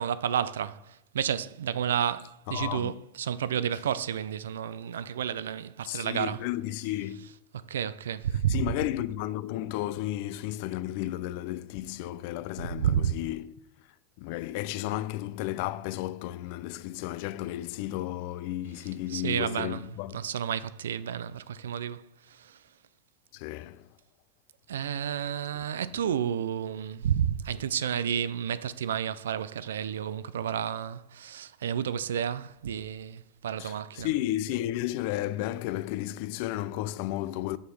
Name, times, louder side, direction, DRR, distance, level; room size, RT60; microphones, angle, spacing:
voice 1, 0.0-6.4 7.7-8.7 12.8-13.1 19.1-19.9 20.1-22.6 24.7-34.1, right 9 dB, 90° right, 0.4 m, -31 dB
voice 2, 2.5-2.9 5.9-7.3 8.5-13.5 14.2-20.2 23.3-23.9 33.6-37.6, left 14 dB, 65° left, 0.5 m, -33 dB
7.1 x 6.3 x 5.4 m
hypercardioid pair, 100°, 0 cm